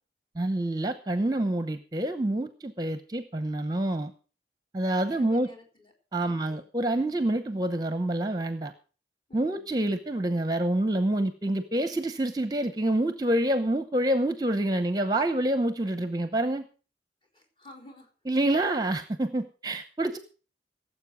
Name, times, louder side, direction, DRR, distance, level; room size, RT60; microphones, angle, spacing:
voice 1, 0.4-4.1 4.7-5.5 6.1-8.7 9.3-16.7 18.3-20.2, right 1 dB, 20° right, 10 dB, 0.8 m, -27 dB
voice 2, 5.1-5.9 6.2-6.7 9.3-9.7 17.3-18.1, equal, 30° left, -1 dB, 4.0 m, -51 dB
17.0 x 7.6 x 6.0 m, 0.38 s
head